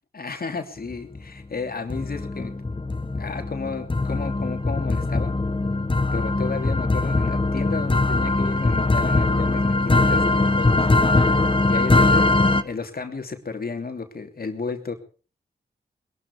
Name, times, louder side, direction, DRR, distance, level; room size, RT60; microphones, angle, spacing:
voice 1, 0.1-2.5 3.2-5.4 6.1-10.9 11.7-14.9, left 4 dB, 60° left, 6 dB, 3.1 m, -33 dB
sound 1, 0.9-1.4 1.9-12.6, left 2 dB, 30° left, 1.6 m, -21 dB
21.0 x 12.5 x 4.9 m, 0.39 s
cardioid pair, 45°, 18 cm